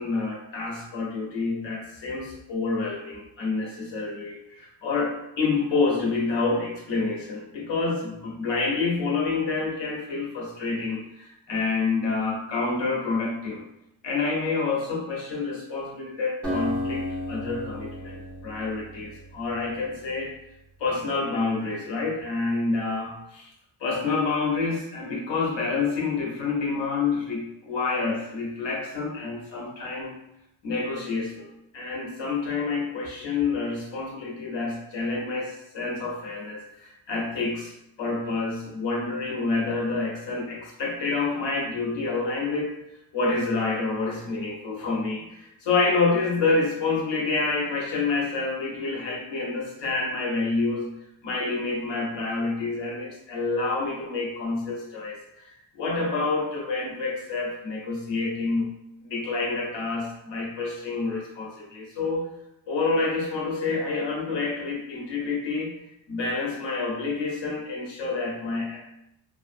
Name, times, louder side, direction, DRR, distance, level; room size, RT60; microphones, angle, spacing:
voice 1, 0.0-13.6 14.0-20.3 20.8-23.5 23.8-30.1 30.6-37.7 38.0-42.7 43.1-50.9 51.2-58.7 59.0-62.3 62.7-65.7 66.1-68.8, left 3 dB, 65° left, -2 dB, 1.0 m, -28 dB
Acoustic guitar, 16.4-20.0, left 1 dB, 5° left, 1.1 m, -33 dB
2.6 x 2.4 x 2.5 m, 0.81 s
cardioid pair, 145°, 48 cm